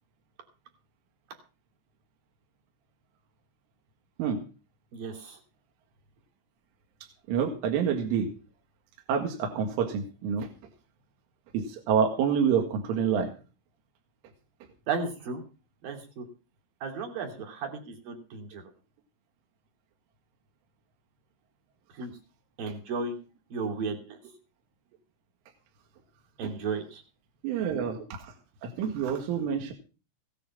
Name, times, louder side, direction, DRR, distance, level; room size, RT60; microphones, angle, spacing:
voice 1, 4.9-5.4 14.9-15.4 15.8-16.3 16.8-18.6 21.9-22.1 22.6-23.2 23.5-24.2 26.4-27.0, right 4 dB, 50° right, 4 dB, 4.2 m, -34 dB
voice 2, 7.3-8.3 9.1-10.5 11.5-13.3 26.4-26.5 27.4-28.3 28.6-29.7, right 7 dB, 75° right, 4 dB, 4.3 m, -27 dB
17.5 x 10.0 x 5.6 m, 0.35 s
omnidirectional pair, 5.9 m